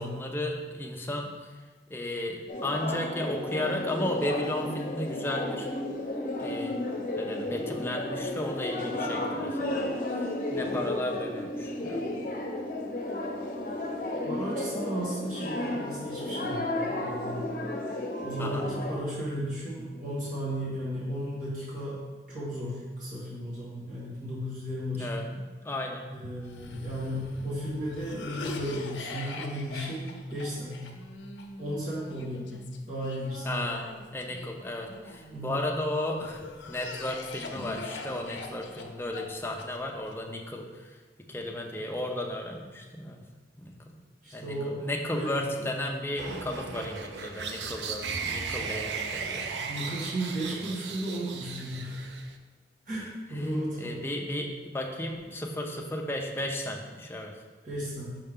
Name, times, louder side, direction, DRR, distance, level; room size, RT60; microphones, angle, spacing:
voice 1, 0.0-1.3 1.9-5.7 6.4-6.7 7.2-10.2 10.5-12.0 18.4-18.6 24.9-25.2 25.6-26.0 33.4-33.9 34.1-40.9 41.3-43.2 43.6-44.0 44.3-49.5 50.7-50.8 53.3-57.3, left 1 dB, 15° left, 1 dB, 0.6 m, -34 dB
sound 1, 2.5-19.0, left 1 dB, 50° left, 0.7 m, -33 dB
voice 2, 14.3-17.5 18.2-22.0 22.3-25.1 26.1-30.9 31.6-33.6 35.3-35.6 44.2-44.8 45.1-45.7 49.7-52.1 52.9-54.0 57.6-58.2, right 1 dB, 50° right, -9 dB, 1.8 m, -35 dB
Cough, 26.4-35.6 36.2-40.1, left 3 dB, 85° left, 0.6 m, -42 dB
sound 2, 46.2-52.4, right 5 dB, 80° right, 0.5 m, -36 dB
5.6 x 5.3 x 3.7 m, 1.3 s
head